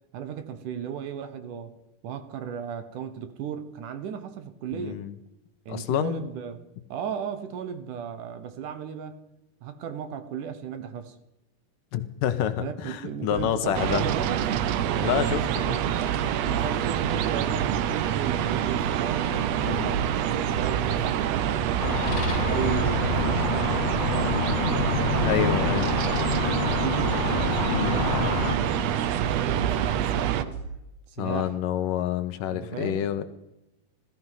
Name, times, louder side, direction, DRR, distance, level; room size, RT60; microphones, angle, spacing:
voice 1, 0.1-1.8 2.0-5.0 5.7-6.6 6.9-9.2 9.6-11.2 12.6-14.5 16.4-21.7 22.3-24.4 25.0-25.9 26.6-27.2 27.7-30.6 31.1-31.5 32.5-33.0, right 8 dB, 70° right, 2.5 m, -35 dB
voice 2, 4.7-5.1 5.7-6.3 11.9-14.0 15.0-15.8 19.6-20.0 25.2-26.0 27.7-28.1 31.2-33.2, left 10 dB, 75° left, 2.4 m, -28 dB
sound 1, 13.3-13.6 13.9-18.0 18.2-20.2 20.4-24.5 24.8-30.7, right 3 dB, 45° right, 5.7 m, -37 dB
sound 2, 13.7-30.4, right 10 dB, 85° right, 1.4 m, -26 dB
sound 3, 21.8-28.6, left 6 dB, 55° left, 1.3 m, -28 dB
16.0 x 14.5 x 5.7 m
omnidirectional pair, 4.1 m